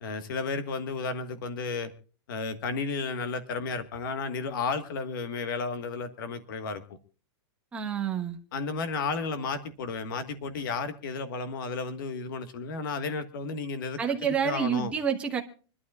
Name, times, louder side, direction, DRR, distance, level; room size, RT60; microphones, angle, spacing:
voice 1, 0.0-1.9 2.3-6.8 8.5-14.9, left 4 dB, 50° left, 1.5 m, -33 dB
voice 2, 7.7-8.4 14.0-15.4, right 7 dB, 10° right, 1.0 m, -28 dB
26.0 x 12.0 x 2.4 m
supercardioid pair, 180°, 14 cm